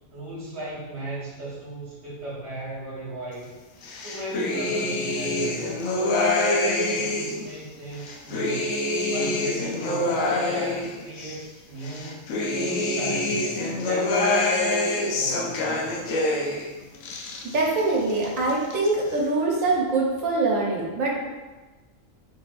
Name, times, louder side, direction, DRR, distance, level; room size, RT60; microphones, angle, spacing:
voice 1, 0.1-3.5 4.0-8.8 9.1-16.0, right 1 dB, 25° right, -8 dB, 1.4 m, -36 dB
sound 1, 3.8-7.5 7.9-11.4 11.8-16.7 16.9-17.8 18.1-18.9, left 2 dB, 85° left, 1.0 m, -26 dB
voice 2, 17.4-21.3, right 2 dB, 85° right, -3 dB, 1.2 m, -24 dB
4.1 x 4.0 x 2.4 m, 1.2 s
omnidirectional pair, 1.4 m